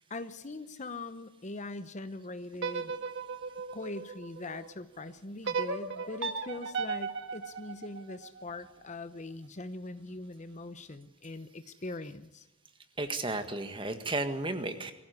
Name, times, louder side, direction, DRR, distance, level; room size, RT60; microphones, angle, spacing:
voice 1, 0.0-3.0 3.7-12.5, left 2 dB, 35° left, 12 dB, 0.9 m, -42 dB
sound 1, 2.5-4.7 5.4-8.6, right 5 dB, 60° right, 1.6 m, -36 dB
voice 2, 13.0-14.9, right 2 dB, 25° right, 8 dB, 1.7 m, -33 dB
22.5 x 15.5 x 9.7 m, 1.0 s
head